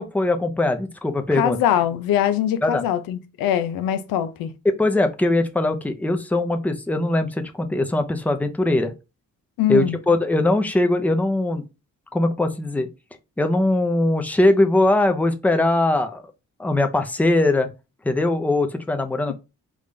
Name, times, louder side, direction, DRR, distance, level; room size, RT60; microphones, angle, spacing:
voice 1, 0.0-1.6 2.6-2.8 4.6-8.9 9.7-11.6 12.1-12.9 13.4-16.2 16.6-17.7 18.0-19.3, left 2 dB, 5° left, 0.6 m, -21 dB
voice 2, 1.3-4.5 9.6-10.0 19.3-19.4, left 11 dB, 85° left, 0.6 m, -22 dB
3.6 x 2.5 x 3.2 m
cardioid pair, 80°, 34 cm